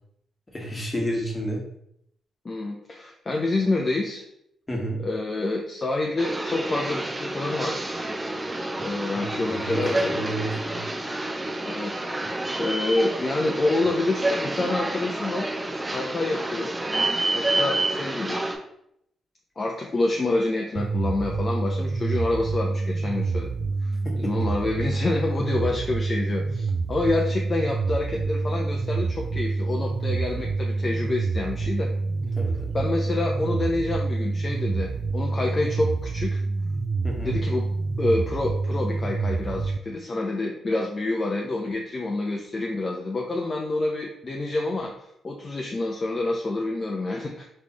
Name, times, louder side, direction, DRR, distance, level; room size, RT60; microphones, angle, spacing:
voice 1, 0.5-1.6 4.7-5.0 9.1-10.8 24.0-24.3 32.2-32.7 37.0-37.3, right 1 dB, 25° left, -1 dB, 1.4 m, -31 dB
voice 2, 2.4-4.2 5.0-7.8 8.8-10.2 11.6-12.3 12.6-15.5 15.9-16.7 17.3-18.4 19.6-23.5 23.8-23.9 24.2-31.9 32.7-36.4 37.2-37.7 38.0-44.9 45.2-47.5, left 2 dB, 40° left, 0 dB, 0.6 m, -27 dB
sound 1, 6.2-18.5, right 2 dB, 20° right, 0.8 m, -29 dB
sound 2, 20.8-39.8, right 3 dB, 50° right, 0.3 m, -27 dB
3.7 x 3.2 x 3.9 m, 0.75 s
supercardioid pair, 60°, 0 cm